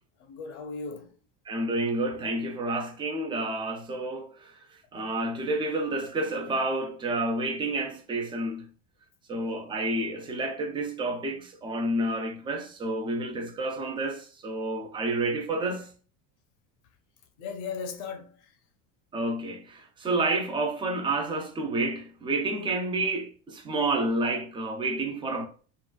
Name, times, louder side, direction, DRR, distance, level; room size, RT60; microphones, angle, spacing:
voice 1, 0.2-1.1 17.4-18.5, left 5 dB, 65° left, 0.7 m, -37 dB
voice 2, 1.5-4.5 4.9-8.7 9.3-15.9 19.1-25.5, right 2 dB, 15° right, 0.3 m, -29 dB
3.8 x 2.3 x 2.2 m
cardioid pair, 155°, 37 cm